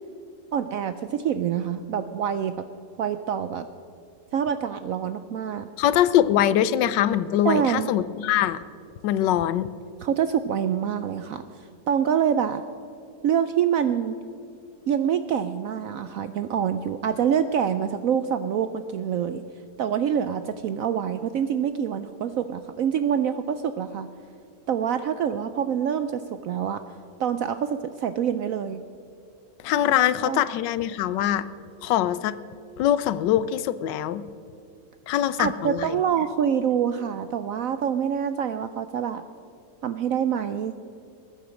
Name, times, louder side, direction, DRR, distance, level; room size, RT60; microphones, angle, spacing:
voice 1, 0.5-2.7 3.0-3.7 4.3-5.7 7.4-7.9 10.0-11.4 11.9-12.6 13.2-14.2 14.9-19.4 19.8-24.1 24.7-26.8 27.2-28.8 30.2-30.4 35.4-39.2 39.8-40.7, right 8 dB, 75° right, 11 dB, 0.8 m, -26 dB
voice 2, 5.8-8.6 9.0-9.7 29.6-31.5 31.8-32.4 32.8-34.2 35.1-36.0, left 11 dB, 85° left, 16 dB, 1.3 m, -23 dB
21.0 x 9.1 x 6.3 m, 2.4 s
omnidirectional pair, 1.9 m